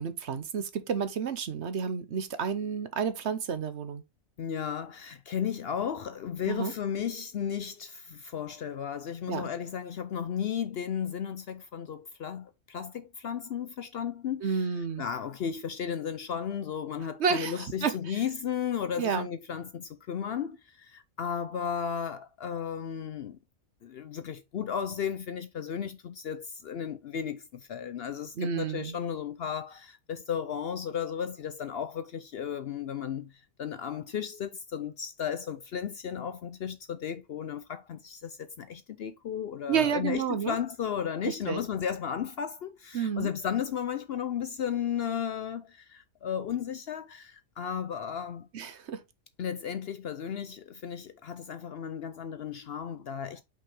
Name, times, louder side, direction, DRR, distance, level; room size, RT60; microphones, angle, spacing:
voice 1, 0.0-4.0 6.5-6.7 9.3-9.5 14.4-15.0 17.2-18.2 19.0-19.3 28.4-29.0 39.7-40.5 41.2-41.6 42.9-43.3 48.5-49.0, right 6 dB, 60° right, 1.0 m, -30 dB
voice 2, 4.4-14.7 15.0-23.4 23.8-48.5 49.4-53.4, left 8 dB, 60° left, 0.7 m, -34 dB
5.5 x 5.4 x 3.2 m
omnidirectional pair, 1.4 m